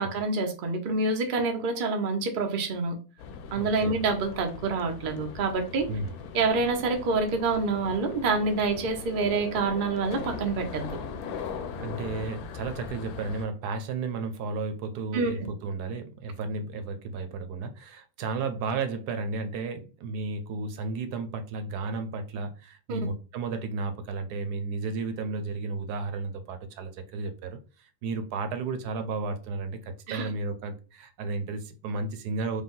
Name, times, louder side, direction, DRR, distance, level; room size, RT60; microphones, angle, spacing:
voice 1, 0.0-2.9 3.5-5.9 6.3-10.9 15.1-15.4 22.9-23.0 30.1-30.3, right 3 dB, 45° right, 0.8 m, -27 dB
sound 1, 3.2-13.5, left 5 dB, 75° left, 1.1 m, -40 dB
voice 2, 3.6-3.9 5.9-6.2 11.8-32.6, right 3 dB, 80° right, 1.2 m, -33 dB
5.1 x 2.2 x 3.7 m
omnidirectional pair, 1.7 m